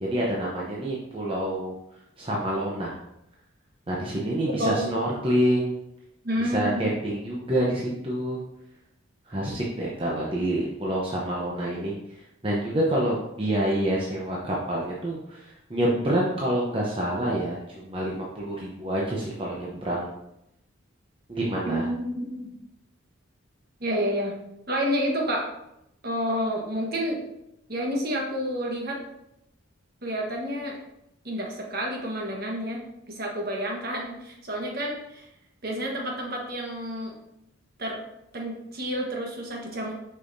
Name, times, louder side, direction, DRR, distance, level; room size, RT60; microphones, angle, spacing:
voice 1, 0.0-1.8 2.2-3.0 3.9-5.7 6.4-8.4 9.3-20.1 21.3-21.9, right 1 dB, 25° right, -4 dB, 0.7 m, -27 dB
voice 2, 4.5-4.9 6.2-6.9 21.6-22.5 23.8-24.3 24.7-25.5 26.0-27.2 27.7-29.0 30.0-30.8 31.2-32.8 33.1-35.3 35.6-37.1 37.8-38.0 38.3-39.9, equal, 45° right, 0 dB, 1.2 m, -29 dB
6.7 x 5.5 x 2.7 m, 0.83 s
head